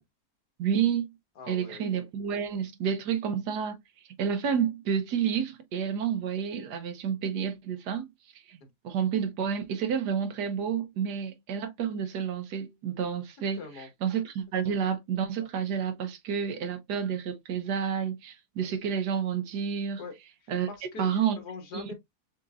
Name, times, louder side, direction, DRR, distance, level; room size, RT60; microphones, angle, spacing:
voice 1, 0.6-1.1 1.5-3.8 4.2-8.1 8.5-8.6 8.8-20.0 20.5-20.7 21.0-21.4 21.7-21.9, right 7 dB, 85° right, 1.4 m, -30 dB
voice 2, 1.4-2.0 13.5-13.9 14.7-14.9 20.0-21.9, left 4 dB, 80° left, 1.8 m, -43 dB
6.6 x 2.9 x 2.4 m
omnidirectional pair, 1.7 m